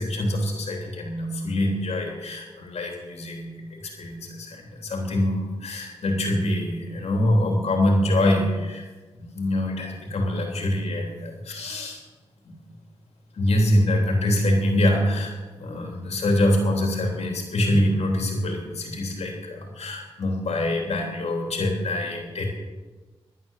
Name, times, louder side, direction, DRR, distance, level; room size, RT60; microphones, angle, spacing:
voice 1, 0.0-8.8 9.2-12.0 12.4-12.5 13.3-22.5, left 1 dB, 85° left, 1 dB, 3.2 m, -25 dB
12.0 x 10.0 x 7.3 m, 1.3 s
cardioid pair, 50°, 11 cm